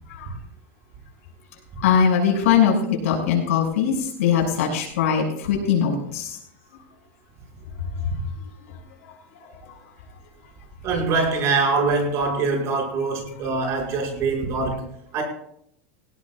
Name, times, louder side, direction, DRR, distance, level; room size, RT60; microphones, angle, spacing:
voice 1, 1.8-6.4 7.9-8.1, left 7 dB, 80° left, -1 dB, 6.7 m, -21 dB
voice 2, 10.8-15.2, right 4 dB, 40° right, 0 dB, 6.2 m, -23 dB
20.0 x 17.5 x 2.5 m, 0.70 s
supercardioid pair, 150°, 8 cm